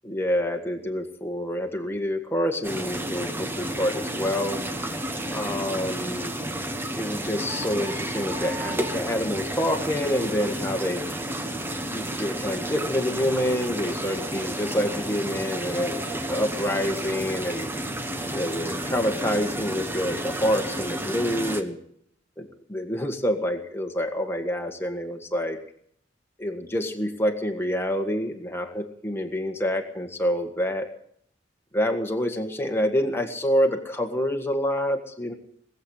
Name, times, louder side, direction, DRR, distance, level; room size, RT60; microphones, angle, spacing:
voice 1, 0.0-4.6 5.3-6.3 6.9-11.0 11.9-17.7 18.3-21.8 22.4-25.6 26.4-30.9 31.7-35.3, equal, 15° left, 4 dB, 1.7 m, -27 dB
sound 1, 2.6-21.6, right 1 dB, 10° right, 1.3 m, -31 dB
19.5 x 8.2 x 8.9 m, 0.67 s
head